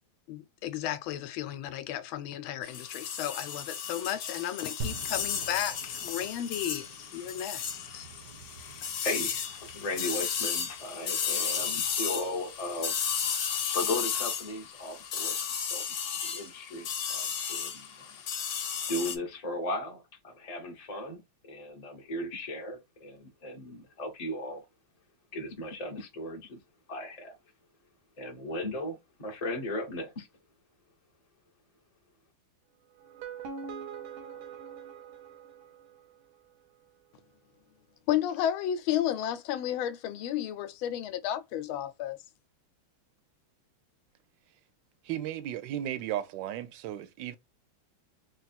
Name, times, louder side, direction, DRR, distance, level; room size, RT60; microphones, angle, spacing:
voice 1, 0.3-6.8 7.1-8.1 38.1-42.2, left 11 dB, 85° left, 1.4 m, -33 dB
sound 1, 2.6-19.2, left 7 dB, 65° left, 0.9 m, -34 dB
sound 2, 4.8-15.1, right 3 dB, 30° right, 0.8 m, -48 dB
voice 2, 8.8-15.3 15.7-15.8 16.3-17.8 18.9-24.6 25.3-26.6 26.9-27.3 28.2-30.3, left 1 dB, 30° left, 0.8 m, -36 dB
sound 3, 33.0-36.1, right 6 dB, 90° right, 1.7 m, -43 dB
voice 3, 45.0-47.4, right 11 dB, 75° right, 1.2 m, -35 dB
3.8 x 2.3 x 4.2 m
omnidirectional pair, 2.2 m